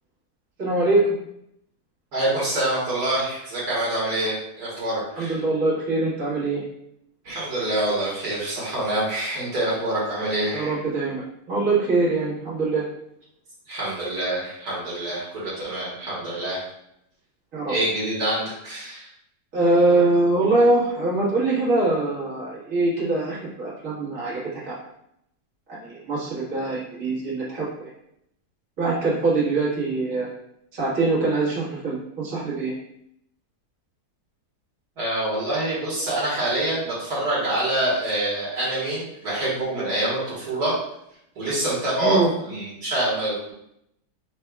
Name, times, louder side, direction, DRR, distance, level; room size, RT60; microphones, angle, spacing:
voice 1, 0.6-1.1 5.2-6.6 10.5-12.8 17.5-17.7 19.5-24.8 25.7-27.9 28.8-30.3 30.7-32.7 42.0-42.3, right 2 dB, 55° right, -8 dB, 1.9 m, -23 dB
voice 2, 2.1-5.4 7.3-10.8 13.7-16.6 17.7-19.1 35.0-40.7 41.4-42.2 42.5-43.5, right 1 dB, 70° right, -7 dB, 2.0 m, -26 dB
5.3 x 4.3 x 2.3 m, 0.76 s
omnidirectional pair, 1.8 m